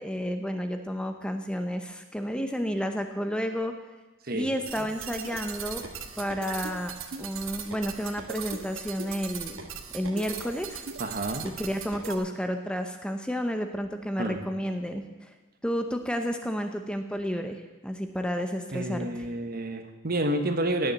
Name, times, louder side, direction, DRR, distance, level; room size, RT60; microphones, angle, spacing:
voice 1, 0.0-3.7 4.3-5.8 6.2-6.9 7.2-9.6 9.9-10.8 11.4-15.0 15.6-19.3, equal, 5° left, 6 dB, 0.8 m, -31 dB
sound 1, 4.6-12.1, right 6 dB, 70° right, 1.4 m, -39 dB
voice 2, 11.0-11.5 14.2-14.4 18.7-20.9, right 1 dB, 45° right, 7 dB, 1.2 m, -29 dB
17.0 x 7.1 x 9.1 m, 1.2 s
head